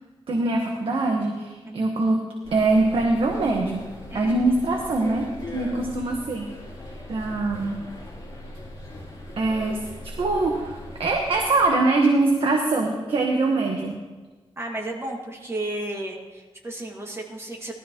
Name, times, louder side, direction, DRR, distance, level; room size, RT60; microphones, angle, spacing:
voice 1, 0.3-2.2 2.5-3.9 4.1-6.5 7.1-7.8 9.4-14.0, right 2 dB, 65° right, 1 dB, 1.3 m, -23 dB
voice 2, 1.6-2.0 4.1-4.4 14.6-17.7, right 1 dB, 25° right, -1 dB, 2.0 m, -33 dB
sound 1, 2.4-11.7, left 1 dB, 40° left, 3.5 m, -39 dB
17.5 x 13.0 x 3.0 m, 1.3 s
wide cardioid pair, 140°, 10 cm